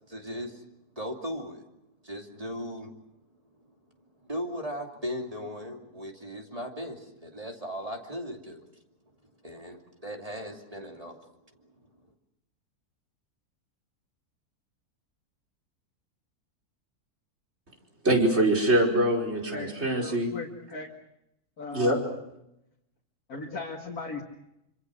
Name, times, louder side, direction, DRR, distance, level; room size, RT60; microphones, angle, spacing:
voice 1, 0.1-0.6 1.0-1.6 2.0-2.9 4.2-8.7 9.4-11.2, equal, 25° right, 2.9 m, -37 dB
voice 2, 18.0-20.3 21.7-22.0, right 1 dB, 45° right, 5.2 m, -24 dB
voice 3, 19.5-20.9 21.6-22.0 23.3-24.2, left 3 dB, 70° left, 2.7 m, -37 dB
27.5 x 26.0 x 6.4 m
omnidirectional pair, 1.6 m